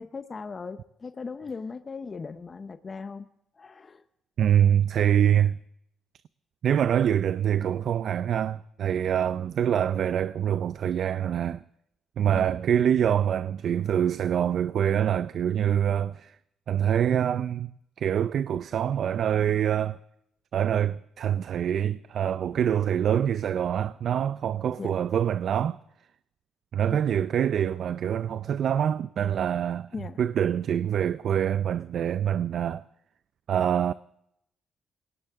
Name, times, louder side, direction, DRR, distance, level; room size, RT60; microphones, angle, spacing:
voice 1, 0.0-3.3 3.6-4.0 12.3-12.5 24.8-24.9 26.9-27.0 29.9-30.2, left 4 dB, 35° left, 0.8 m, -38 dB
voice 2, 4.4-5.6 6.6-11.6 12.2-16.4 16.7-17.7 18.0-20.0 20.5-25.8 26.7-29.9 30.2-32.8 33.5-33.9, right 9 dB, 65° right, 0.5 m, -25 dB
20.5 x 18.0 x 3.6 m
cardioid pair, 90°, 0 cm